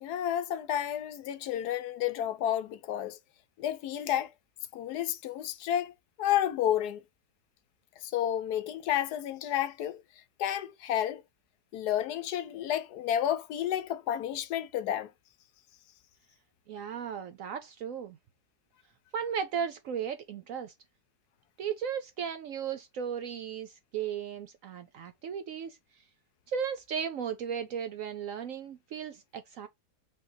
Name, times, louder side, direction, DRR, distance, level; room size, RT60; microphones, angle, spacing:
voice 1, 0.0-3.2 3.6-4.3 4.7-5.9 6.2-7.0 8.0-10.0 10.4-11.2 11.7-15.1, left 11 dB, 75° left, 1.1 m, -31 dB
voice 2, 16.7-18.2 19.1-20.7 21.6-25.8 26.5-29.7, right 7 dB, 70° right, 0.8 m, -35 dB
5.2 x 3.5 x 2.7 m
omnidirectional pair, 1.8 m